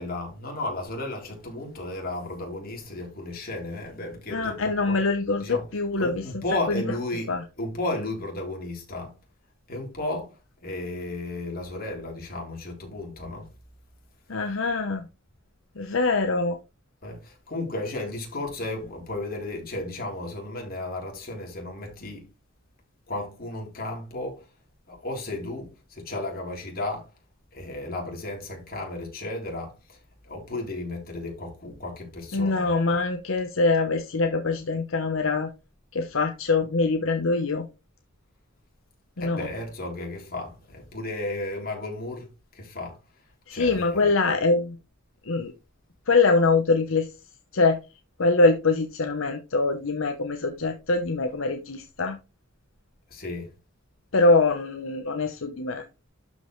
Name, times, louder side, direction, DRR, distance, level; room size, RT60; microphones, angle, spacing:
voice 1, 0.0-5.0 5.4-5.7 6.0-9.2 9.7-13.5 17.0-22.3 23.1-24.5 24.9-27.1 27.5-33.0 39.2-44.1 53.1-53.5, left 2 dB, 45° left, 3.5 m, -34 dB
voice 2, 4.3-6.2 6.7-6.8 7.3-7.4 14.3-15.1 15.8-16.6 32.3-35.5 35.9-37.7 39.2-39.5 43.5-44.8 45.2-45.5 46.1-47.1 47.5-47.8 48.2-52.2 54.1-55.8, left 3 dB, 75° left, 0.9 m, -23 dB
12.0 x 5.3 x 3.1 m
head